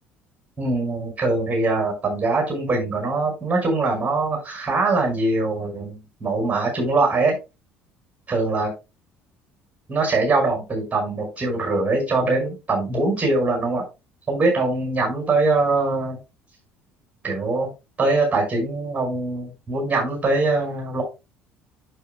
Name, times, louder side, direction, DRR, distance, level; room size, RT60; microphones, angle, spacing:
voice 1, 0.6-7.3 8.3-8.7 9.9-13.8 14.3-16.2 17.2-17.7 18.0-21.0, right 3 dB, 25° right, 1 dB, 5.6 m, -22 dB
11.5 x 6.4 x 2.2 m, 0.26 s
hypercardioid pair, 60°, 6 cm